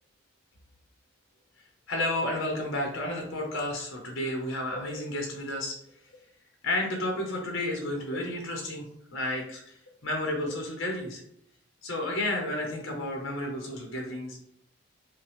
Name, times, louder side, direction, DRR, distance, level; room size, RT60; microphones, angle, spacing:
voice 1, 1.9-5.8 6.6-11.2 11.8-14.4, left 1 dB, 70° left, 1 dB, 0.9 m, -32 dB
5.8 x 2.3 x 3.3 m, 0.69 s
head